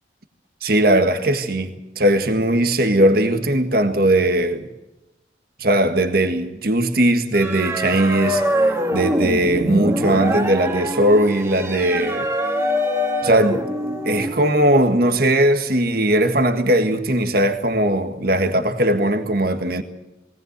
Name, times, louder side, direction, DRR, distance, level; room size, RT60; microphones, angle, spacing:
voice 1, 0.6-4.7 5.6-8.5 8.9-12.3 13.2-13.6 14.0-19.8, right 1 dB, 55° right, 1.7 m, -19 dB
sound 1, 7.3-14.7, equal, 15° right, 1.8 m, -24 dB
21.0 x 18.5 x 8.1 m
head